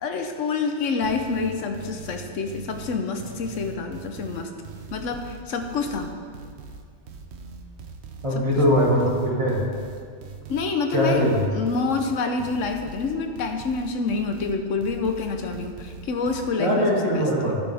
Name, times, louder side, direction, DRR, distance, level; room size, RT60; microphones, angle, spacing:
voice 1, 0.0-4.5 4.9-6.1 10.5-17.5, left 4 dB, 85° left, 5 dB, 1.2 m, -27 dB
sound 1, 1.0-16.5, right 5 dB, 65° right, 1.0 m, -41 dB
voice 2, 8.2-9.6 10.9-11.4 16.6-17.5, equal, 25° right, -5 dB, 2.2 m, -21 dB
11.5 x 10.5 x 3.4 m, 2.1 s
omnidirectional pair, 1.3 m